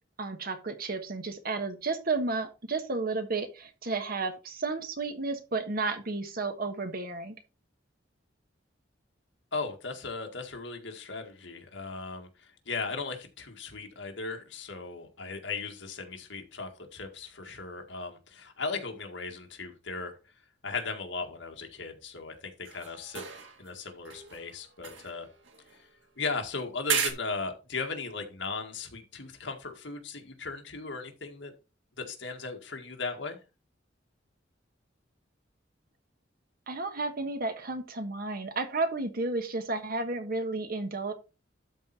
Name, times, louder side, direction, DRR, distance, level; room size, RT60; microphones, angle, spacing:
voice 1, 0.2-7.3 36.7-41.1, right 3 dB, 50° right, 7 dB, 1.4 m, -32 dB
voice 2, 9.5-20.2 20.6-23.2 23.6-25.3 25.8-25.9 26.2-31.5 32.0-33.4, left 4 dB, 70° left, 4 dB, 1.9 m, -37 dB
sound 1, 22.6-23.8 24.1-26.2 26.9-27.1, right 7 dB, 90° right, 1.7 m, -35 dB
12.5 x 4.4 x 4.2 m, 0.30 s
head